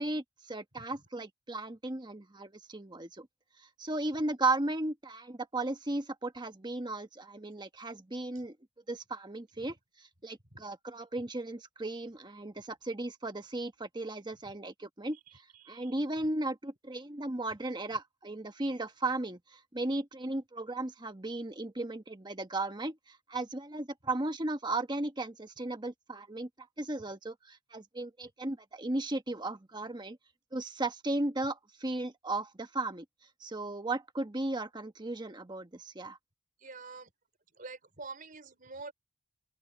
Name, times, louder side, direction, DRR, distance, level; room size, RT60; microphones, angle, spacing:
voice 1, 0.0-3.3 3.8-8.6 8.9-15.2 15.7-30.2 30.5-33.0 33.4-36.2, right 2 dB, 20° right, 1.2 m, -35 dB
voice 2, 15.5-15.9 36.6-37.1 37.5-38.9, right 3 dB, 40° right, 4.4 m, -46 dB
open air
head